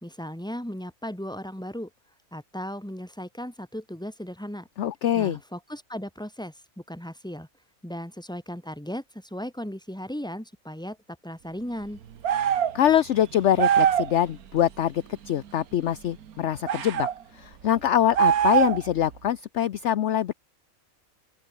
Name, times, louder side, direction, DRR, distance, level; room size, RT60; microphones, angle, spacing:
voice 1, 0.0-1.9 2.3-4.7 5.1-7.5 7.8-11.0 11.2-12.0, equal, 5° left, 3.1 m, -36 dB
voice 2, 4.8-5.4 12.7-17.1 17.3-20.3, left 11 dB, 60° left, 0.9 m, -24 dB
sound 1, 12.2-12.8 13.6-14.1 16.7-17.1 18.1-18.9, right 9 dB, 85° right, 1.6 m, -22 dB
open air
omnidirectional pair, 1.5 m